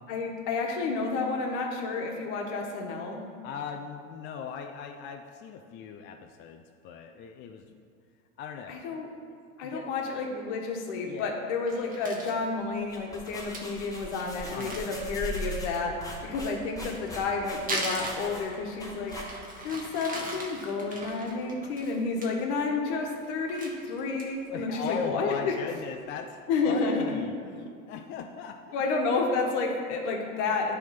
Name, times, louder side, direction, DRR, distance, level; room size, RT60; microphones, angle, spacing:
voice 1, 0.1-3.2 8.7-9.1 9.6-16.0 16.2-19.1 19.6-25.6 26.5-27.1 28.7-30.8, left 4 dB, 55° left, 2 dB, 1.3 m, -30 dB
voice 2, 3.4-7.7 8.4-8.8 9.6-9.8 11.1-11.4 14.5-14.8 24.5-26.4 26.6-28.8, left 6 dB, 30° left, 5 dB, 0.4 m, -39 dB
Crumpling crinkling, 11.7-12.4 12.9-13.0 13.3-13.4 13.5-13.6 13.9-14.0 14.4-15.6 16.8-18.7 19.1-22.3 22.7-22.9 23.2-24.5 24.9-25.0 25.4-25.8, right 2 dB, 20° right, 1.2 m, -38 dB
sound 1, 12.7-19.7, right 1 dB, 10° left, 1.2 m, -40 dB
9.0 x 3.5 x 5.7 m, 2.2 s
hypercardioid pair, 95°, 41 cm